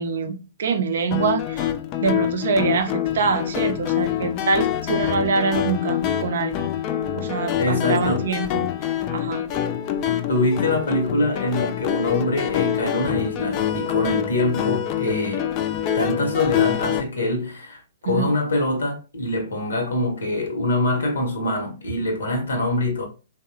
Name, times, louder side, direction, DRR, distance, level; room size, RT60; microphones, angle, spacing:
voice 1, 0.0-1.7 2.0-6.7 7.1-9.4 18.1-18.3, right 5 dB, 65° right, 0.4 m, -25 dB
sound 1, 1.1-17.0, left 10 dB, 35° left, 0.3 m, -25 dB
voice 2, 7.6-8.3 10.3-15.5 15.9-23.1, left 2 dB, 80° left, 0.8 m, -24 dB
2.7 x 2.0 x 2.5 m
hypercardioid pair, 120°, 0 cm